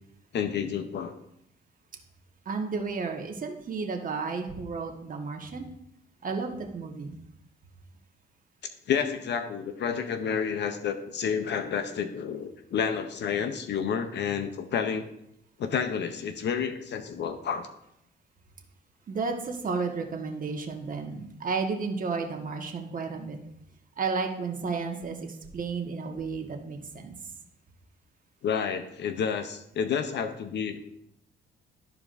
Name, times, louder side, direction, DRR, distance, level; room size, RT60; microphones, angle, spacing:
voice 1, 0.3-1.1 8.9-15.1 15.6-17.7 28.4-30.8, left 7 dB, 60° left, 8 dB, 0.7 m, -30 dB
voice 2, 2.4-5.7 6.2-7.1 19.1-23.4 24.0-27.1, right 4 dB, 45° right, 2 dB, 1.4 m, -32 dB
13.0 x 4.8 x 2.6 m, 0.77 s
cardioid pair, 90°, 20 cm